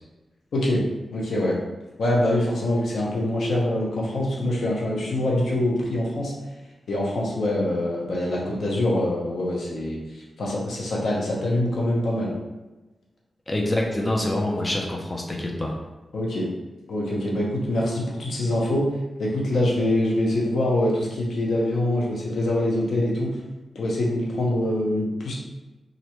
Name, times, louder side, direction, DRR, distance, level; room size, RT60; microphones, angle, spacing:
voice 1, 0.5-0.8 1.1-1.6 2.0-6.3 6.9-10.0 10.4-12.3 16.1-16.5 16.9-18.8 19.2-23.3 23.7-25.3, left 1 dB, 75° left, -3 dB, 0.8 m, -24 dB
voice 2, 13.5-15.7, left 1 dB, 20° left, -1 dB, 0.4 m, -26 dB
3.2 x 2.5 x 2.9 m, 1.1 s
wide cardioid pair, 125°, 0 cm